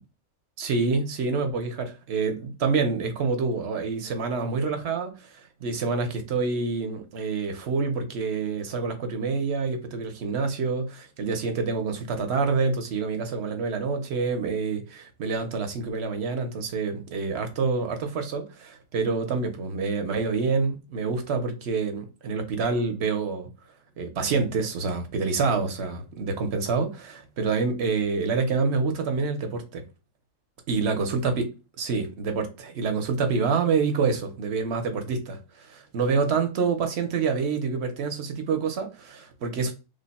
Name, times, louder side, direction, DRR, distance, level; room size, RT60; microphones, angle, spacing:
voice 1, 0.6-23.5 24.0-29.8 30.7-31.5 31.8-39.7, right 4 dB, 55° right, 0.9 m, -27 dB
3.4 x 2.2 x 4.0 m
omnidirectional pair, 1.4 m